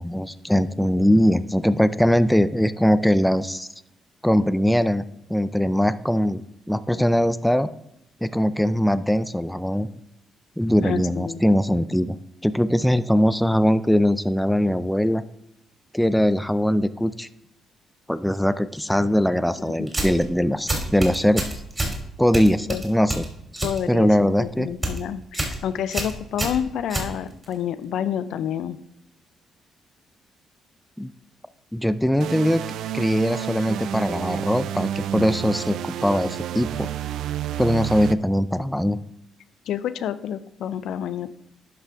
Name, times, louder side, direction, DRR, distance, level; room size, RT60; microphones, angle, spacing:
voice 1, 0.0-3.7 4.2-6.4 6.7-7.7 8.2-9.9 10.6-12.2 12.4-15.2 15.9-17.3 18.1-21.5 22.2-23.2 23.5-24.7 31.0-31.1 31.7-32.6 32.9-36.9 37.6-39.0, equal, 5° left, 14 dB, 0.4 m, -21 dB
voice 2, 10.8-11.4 19.6-19.9 22.7-22.8 23.6-28.8 39.7-41.3, left 9 dB, 80° left, 14 dB, 0.5 m, -29 dB
sound 1, 19.9-20.3 20.7-22.0 22.3-23.8 24.1-24.4 24.7-25.0 25.3-25.6 25.9-27.5, right 1 dB, 20° right, 2.9 m, -27 dB
sound 2, 32.2-38.1, right 11 dB, 80° right, 0.3 m, -30 dB
11.0 x 5.7 x 3.6 m, 0.81 s
cardioid pair, 90°, 0 cm